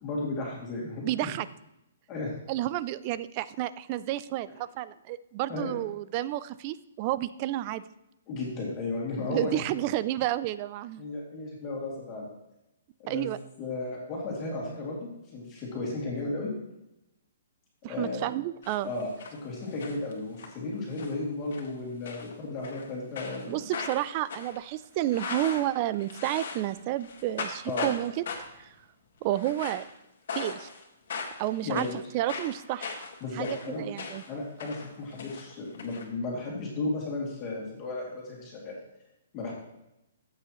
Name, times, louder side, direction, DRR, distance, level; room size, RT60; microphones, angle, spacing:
voice 1, 0.0-1.1 2.1-2.3 5.5-5.7 8.3-9.6 11.0-12.3 13.0-13.3 13.6-16.5 17.9-18.2 18.8-19.1 19.4-23.6 27.7-27.9 31.6-32.0 33.2-33.9 34.3-38.8 39.3-39.5, left 2 dB, 15° left, -3 dB, 2.5 m, -34 dB
voice 2, 1.0-1.5 2.5-7.8 9.2-11.0 13.1-13.4 17.8-18.9 23.5-28.2 28.6-28.7 29.2-29.9 30.3-30.7 31.4-31.9 32.1-33.0 33.3-34.2, right 14 dB, 25° right, 16 dB, 0.3 m, -31 dB
sound 1, 18.6-19.4 19.6-20.5 20.9-21.2 21.5-21.7 22.1-22.9 23.2-26.7 27.0-28.0 28.3-28.6 29.3-29.9 30.3-30.8 31.1-34.3 34.6-36.0, left 5 dB, 50° left, 1.8 m, -38 dB
14.0 x 8.3 x 3.1 m, 0.89 s
hypercardioid pair, 180°, 0 cm